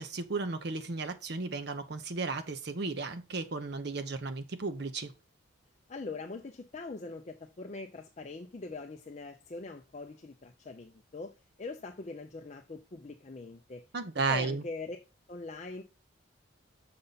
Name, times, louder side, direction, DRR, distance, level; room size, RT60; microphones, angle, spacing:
voice 1, 0.0-5.1 13.9-14.6, right 3 dB, 55° right, 0.7 m, -34 dB
voice 2, 5.9-13.8 14.3-15.0 15.3-15.8, left 3 dB, 35° left, 0.5 m, -42 dB
6.7 x 5.5 x 3.9 m
head